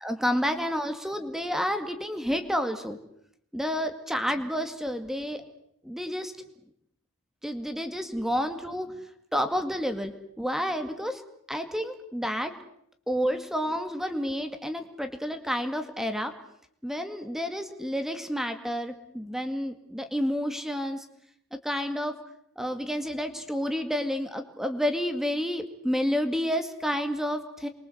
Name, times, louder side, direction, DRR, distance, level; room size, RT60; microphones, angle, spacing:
voice 1, 0.0-3.0 3.5-5.4 5.8-6.3 7.4-9.0 9.3-11.2 11.5-12.5 13.1-16.3 16.8-21.1 21.5-22.2 22.6-27.7, equal, ahead, 7 dB, 2.1 m, -30 dB
28.5 x 23.0 x 8.0 m, 0.70 s
head